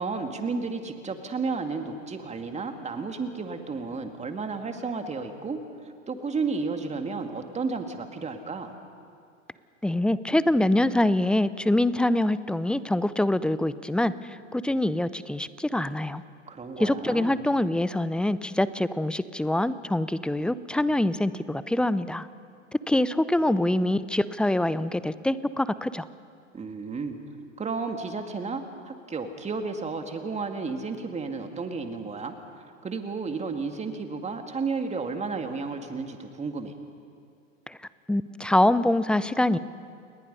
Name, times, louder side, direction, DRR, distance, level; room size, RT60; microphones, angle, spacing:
voice 1, 0.0-8.7 16.5-17.4 26.5-27.2 27.6-32.4 32.8-36.8, right 4 dB, 15° right, 6 dB, 2.3 m, -32 dB
voice 2, 9.8-16.2 16.8-22.3 22.9-26.1 37.7-37.8 38.1-39.6, left 1 dB, ahead, 16 dB, 0.5 m, -25 dB
30.0 x 20.5 x 5.5 m, 2.3 s
figure-of-eight pair, 95°, 39 cm